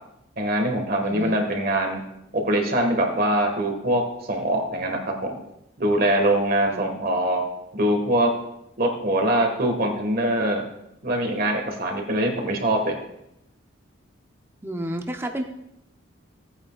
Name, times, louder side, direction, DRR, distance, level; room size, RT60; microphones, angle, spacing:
voice 1, 0.4-2.0 2.3-5.4 5.8-7.4 7.7-8.3 8.8-10.6 11.0-13.0, right 1 dB, 50° right, 3 dB, 1.7 m, -23 dB
voice 2, 1.0-1.4 6.7-6.8 14.6-15.5, right 1 dB, 10° right, 4 dB, 0.7 m, -30 dB
17.0 x 8.9 x 2.4 m, 0.84 s
head